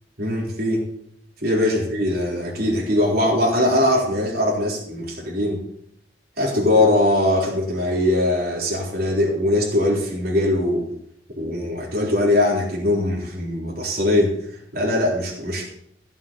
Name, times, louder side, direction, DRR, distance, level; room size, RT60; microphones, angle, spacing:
voice 1, 0.2-0.9 1.4-5.6 6.4-10.9 11.4-14.4 14.7-15.7, left 1 dB, 60° right, -3 dB, 4.0 m, -21 dB
15.5 x 7.3 x 7.1 m, 0.72 s
head